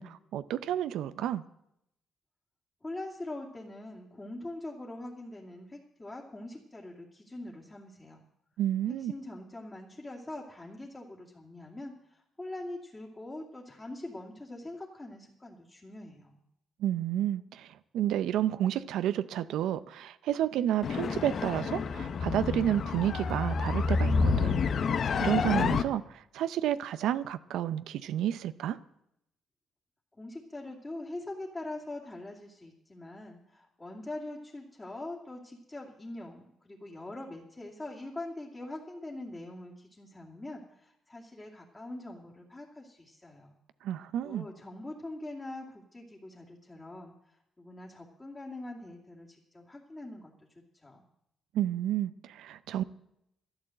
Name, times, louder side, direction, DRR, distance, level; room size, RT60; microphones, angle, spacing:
voice 1, 0.0-1.4 8.6-9.1 16.8-24.6 25.2-28.8 43.8-44.4 51.5-52.8, right 11 dB, 85° right, 0.6 m, -31 dB
voice 2, 2.8-8.2 8.9-16.4 30.1-43.6 44.2-50.3 50.7-51.0, left 2 dB, 20° left, 2.5 m, -43 dB
sound 1, 20.8-25.8, left 5 dB, 55° left, 0.8 m, -28 dB
12.0 x 11.0 x 7.8 m
cardioid pair, 90°, 0 cm